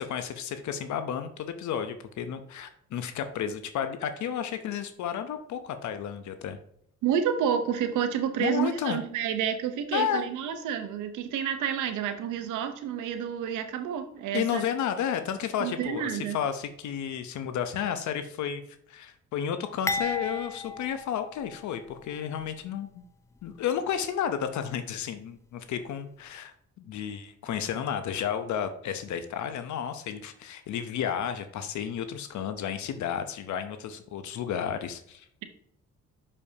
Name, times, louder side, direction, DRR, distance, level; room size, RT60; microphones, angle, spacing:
voice 1, 0.0-6.6 8.4-9.0 9.9-10.2 14.3-23.0 23.4-35.3, left 8 dB, 75° left, 9 dB, 0.7 m, -32 dB
voice 2, 7.0-14.6 15.6-16.4, right 8 dB, 90° right, 8 dB, 0.9 m, -29 dB
sound 1, 19.9-22.0 22.4-22.5 23.4-23.6, left 3 dB, 10° left, 0.4 m, -34 dB
6.4 x 5.4 x 2.7 m, 0.70 s
cardioid pair, 90°, 30 cm